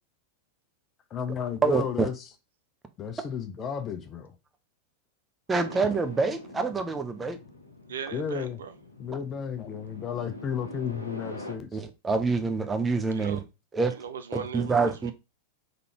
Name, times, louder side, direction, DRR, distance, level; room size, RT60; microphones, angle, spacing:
voice 1, 1.1-2.1 3.0-4.3 8.1-8.6 9.0-11.7, left 7 dB, 30° left, 0.6 m, -33 dB
voice 2, 1.6-2.1 5.5-7.4 11.7-13.4 13.7-14.0 14.3-15.1, right 4 dB, 15° right, 0.6 m, -26 dB
sound 1, 5.5-11.6, left 1 dB, 80° left, 0.8 m, -44 dB
voice 3, 7.9-8.7 13.1-13.4 13.9-14.7 15.0-15.1, right 7 dB, 65° right, 0.5 m, -38 dB
3.8 x 3.3 x 2.9 m
figure-of-eight pair, 90°, 0 cm